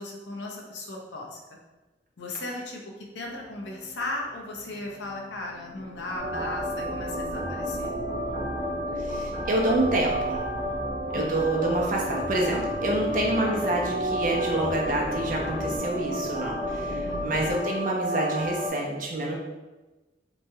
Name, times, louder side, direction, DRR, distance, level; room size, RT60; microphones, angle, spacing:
voice 1, 0.0-1.4 2.2-2.8 3.1-7.9 11.1-11.4 17.0-17.5, left 2 dB, 85° left, 0 dB, 0.6 m, -36 dB
sound 1, 3.2-17.5, equal, 15° right, 0.7 m, -38 dB
sound 2, 6.2-18.7, equal, 60° left, 1.3 m, -32 dB
Bass guitar, 6.2-15.8, equal, 35° left, 0.6 m, -42 dB
voice 2, 9.0-10.4 11.1-19.3, right 1 dB, 50° right, -1 dB, 0.5 m, -27 dB
3.0 x 2.2 x 2.7 m, 1.1 s
head